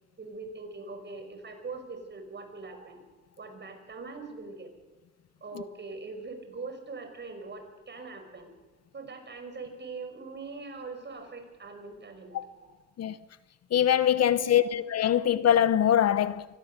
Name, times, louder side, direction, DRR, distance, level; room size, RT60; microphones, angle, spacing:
voice 1, 0.2-3.0 3.4-4.7 5.4-8.5 8.9-12.8 14.2-14.9, right 3 dB, 35° right, 5.5 m, -42 dB
voice 2, 13.7-16.5, left 10 dB, 55° left, 0.9 m, -23 dB
24.5 x 17.0 x 6.7 m
cardioid pair, 90°, 30 cm